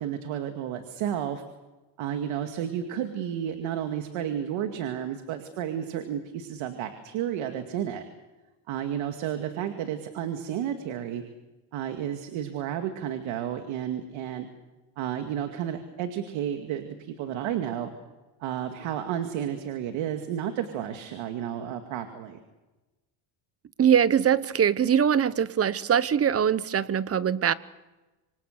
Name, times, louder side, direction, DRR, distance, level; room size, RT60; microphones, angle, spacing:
voice 1, 0.0-1.4 2.0-8.0 8.7-11.2 11.7-14.5 15.0-17.9 18.4-22.4, right 10 dB, 70° right, 6 dB, 2.3 m, -32 dB
voice 2, 23.8-27.5, right 8 dB, 30° right, 16 dB, 0.9 m, -22 dB
26.0 x 25.5 x 6.7 m, 1.1 s
cardioid pair, 120°, 50 cm